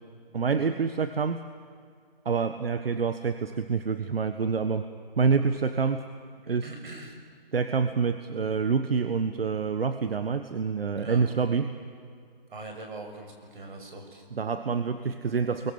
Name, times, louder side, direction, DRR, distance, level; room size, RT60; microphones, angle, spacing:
voice 1, 0.3-1.4 2.2-4.8 5.2-6.0 6.5-6.7 7.5-11.7 14.3-15.7, right 5 dB, 85° right, 9 dB, 1.4 m, -27 dB
voice 2, 6.6-7.1 10.9-11.3 12.5-14.2, right 2 dB, 60° right, 3 dB, 6.4 m, -42 dB
28.5 x 23.0 x 7.1 m, 2.2 s
hypercardioid pair, 165°, 29 cm